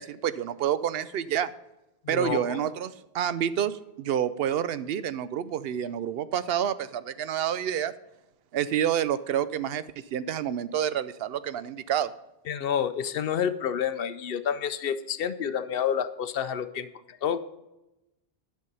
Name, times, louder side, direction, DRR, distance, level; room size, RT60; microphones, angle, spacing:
voice 1, 0.0-1.5 2.1-7.9 8.5-9.8 10.1-12.1, right 9 dB, 70° right, 14 dB, 0.8 m, -28 dB
voice 2, 2.0-2.6 12.5-17.4, left 8 dB, 70° left, 13 dB, 0.8 m, -29 dB
10.5 x 6.4 x 5.4 m, 0.95 s
omnidirectional pair, 1.0 m